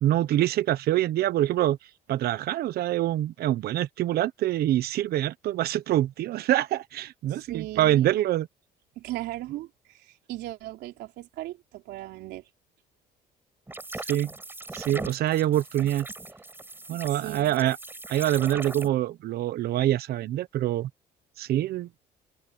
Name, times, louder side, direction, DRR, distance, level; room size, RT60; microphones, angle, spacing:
voice 1, 0.0-1.8 2.1-8.5 14.1-14.3 14.7-16.1 16.9-17.8 18.1-20.9 21.4-21.9, right 13 dB, 70° right, 1.1 m, -25 dB
voice 2, 7.3-8.2 9.0-12.5 17.2-17.6, right 16 dB, 85° right, 3.8 m, -38 dB
sound 1, 13.7-18.9, right 2 dB, 10° right, 6.0 m, -40 dB
cardioid pair, 110°, 17 cm